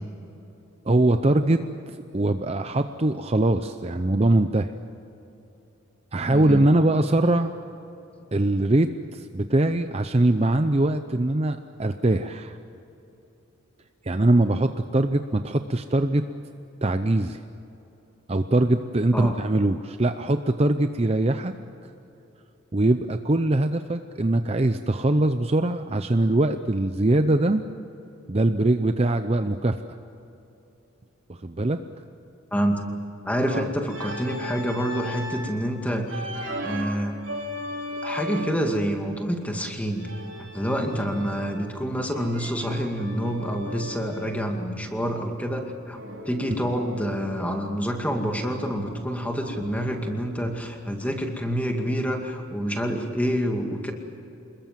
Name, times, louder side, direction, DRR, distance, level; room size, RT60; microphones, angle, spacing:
voice 1, 0.8-1.6 1.9-4.7 6.1-7.5 8.3-12.6 14.0-16.2 16.8-17.4 18.3-21.5 22.7-27.6 28.3-30.0 31.3-31.8 33.5-33.6 46.6-46.7, right 2 dB, 30° right, 8 dB, 0.6 m, -22 dB
voice 2, 6.3-6.6 19.1-19.4 32.5-32.8 33.2-36.3 36.6-37.1 38.0-40.1 40.4-46.0 46.3-53.9, equal, 5° left, 3 dB, 2.3 m, -27 dB
Organ, 33.9-35.5 36.1-38.7 40.0-41.7 42.1-44.4 45.9-47.8 48.1-50.8, equal, 60° right, 3.8 m, -37 dB
27.5 x 21.5 x 7.5 m, 2.9 s
head